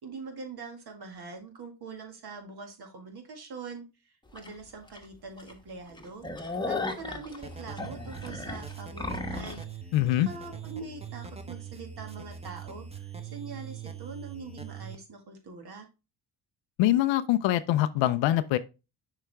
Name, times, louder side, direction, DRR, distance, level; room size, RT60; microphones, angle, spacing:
voice 1, 0.0-9.9 10.3-15.9, right 4 dB, 60° right, 2.0 m, -43 dB
sound 1, 4.4-4.5 4.9-5.0 5.4-5.5 5.9-9.6, left 3 dB, 10° left, 1.2 m, -35 dB
sound 2, 7.4-15.0, right 7 dB, 15° right, 1.1 m, -42 dB
voice 2, 9.9-10.3 16.8-18.6, left 14 dB, 90° left, 0.6 m, -24 dB
6.6 x 4.9 x 3.4 m
supercardioid pair, 65°, 44 cm